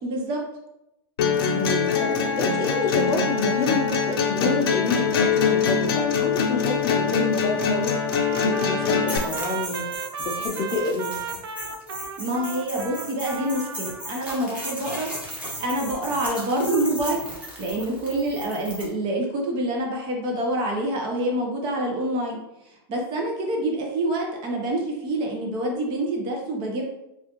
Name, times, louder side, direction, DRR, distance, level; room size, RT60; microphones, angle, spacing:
voice 1, 0.0-0.4 12.2-15.1 15.6-17.2 17.6-22.4 22.9-26.8, right 1 dB, 35° right, 0 dB, 0.7 m, -26 dB
sound 1, 1.2-9.2, left 6 dB, 65° left, 0.6 m, -23 dB
voice 2, 1.5-8.0 8.4-9.8 10.2-11.2, left 4 dB, 25° left, 1 dB, 0.6 m, -28 dB
Trumpet, 7.2-14.1, right 6 dB, 75° right, 0.4 m, -35 dB
sound 2, 9.1-18.9, right 1 dB, 10° right, 0.9 m, -36 dB
3.4 x 2.4 x 2.9 m, 0.88 s
hypercardioid pair, 130°, 13 cm